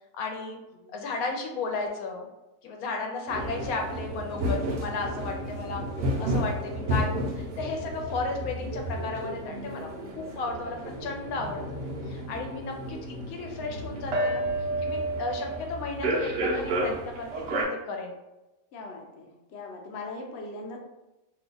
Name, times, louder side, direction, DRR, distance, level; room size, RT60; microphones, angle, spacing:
voice 1, 0.1-0.6 0.9-2.3 2.6-5.8 6.2-9.9 10.1-11.6 12.1-14.5 14.8-18.1, left 3 dB, 80° left, 2 dB, 1.1 m, -34 dB
sound 1, 3.3-17.6, right 1 dB, 60° right, 0.8 m, -31 dB
voice 2, 18.7-20.8, left 2 dB, 65° left, 1 dB, 0.7 m, -40 dB
2.7 x 2.3 x 3.8 m, 0.98 s
omnidirectional pair, 1.5 m